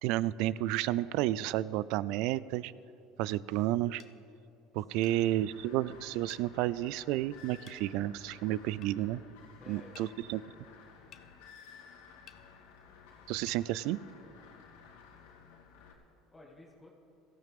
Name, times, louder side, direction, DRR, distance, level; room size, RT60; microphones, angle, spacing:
voice 1, 0.0-2.7 3.2-4.0 4.7-9.2 9.7-10.4 13.3-14.0, right 14 dB, 70° right, 19 dB, 0.3 m, -31 dB
sound 1, 4.0-4.2 5.0-5.2 6.3-6.5 7.7-7.8 8.8-9.0 10.0-10.1 11.1-11.3 12.3-12.4 13.5-13.6, left 10 dB, 55° left, 0.9 m, -55 dB
sound 2, 4.9-15.9, left 6 dB, 90° left, 2.4 m, -55 dB
voice 2, 4.9-5.3 9.6-10.7 16.3-16.9, left 2 dB, 15° left, -3 dB, 2.2 m, -56 dB
18.0 x 14.5 x 3.6 m, 2.8 s
supercardioid pair, 95°, 0 cm